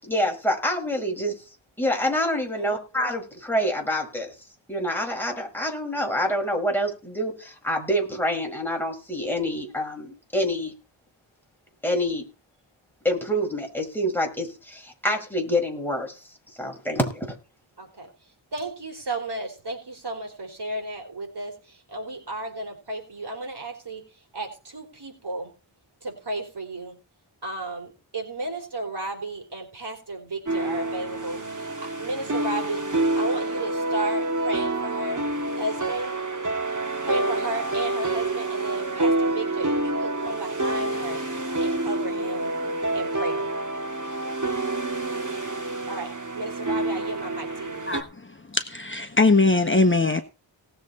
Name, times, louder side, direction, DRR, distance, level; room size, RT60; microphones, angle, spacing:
voice 1, 0.0-1.3 1.8-4.3 4.7-10.7 11.8-12.2 13.0-16.2 16.6-17.4, equal, 5° left, 0 dB, 5.7 m, -26 dB
voice 2, 17.8-18.1 18.5-21.5 21.9-24.0 24.3-25.5 26.0-26.9 27.4-31.4 31.8-32.8 33.1-35.2 35.6-36.2 37.1-41.2 41.6-42.5 42.9-43.5 45.9-47.8, right 2 dB, 60° right, 1 dB, 4.8 m, -33 dB
sound 1, 30.5-48.0, right 2 dB, 40° right, 2.5 m, -28 dB
voice 3, 48.5-50.2, left 3 dB, 25° left, 6 dB, 1.2 m, -20 dB
19.0 x 7.7 x 4.3 m, 0.32 s
wide cardioid pair, 85°, 46 cm